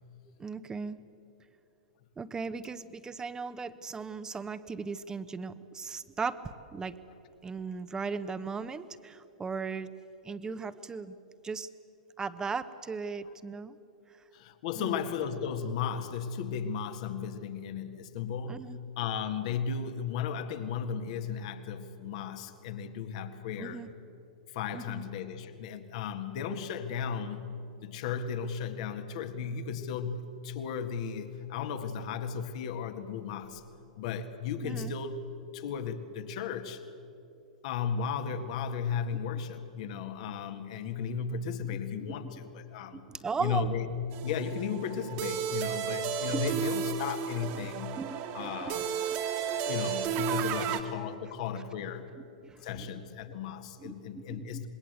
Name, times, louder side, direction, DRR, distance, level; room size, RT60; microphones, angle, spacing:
voice 1, 0.4-1.0 2.2-6.4 6.7-7.0 7.4-9.9 10.2-11.1 11.4-11.7 12.2-13.7 14.7-14.9 18.5-18.8 23.6-23.9 24.7-25.0 34.6-34.9 42.1-42.2 42.9-43.7 46.2-46.7 47.5-48.8 49.1-49.5 52.4-52.8 53.8-54.7, right 5 dB, 15° right, 13 dB, 1.1 m, -37 dB
voice 2, 14.3-23.8 24.5-27.5 27.8-33.6 34.0-35.2 35.5-36.8 37.6-43.1 43.4-43.9 44.2-48.0 48.3-48.9 49.7-52.1 52.6-54.7, left 6 dB, 55° left, 9 dB, 1.9 m, -35 dB
sound 1, 44.1-50.8, right 8 dB, 45° right, 2.1 m, -33 dB
26.5 x 21.0 x 8.2 m, 2.9 s
hypercardioid pair, 105°, 4 cm